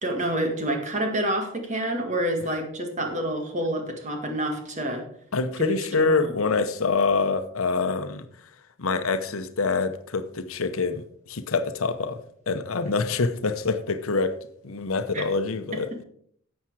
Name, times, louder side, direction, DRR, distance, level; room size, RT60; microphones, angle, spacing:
voice 1, 0.0-5.0 5.6-6.3 15.1-15.2 15.9-16.0, right 1 dB, 35° right, 4 dB, 1.9 m, -28 dB
voice 2, 5.3-8.2 8.8-12.2 12.5-14.3 14.6-15.9, left 4 dB, 85° left, 10 dB, 0.8 m, -25 dB
11.5 x 7.4 x 4.7 m, 0.64 s
head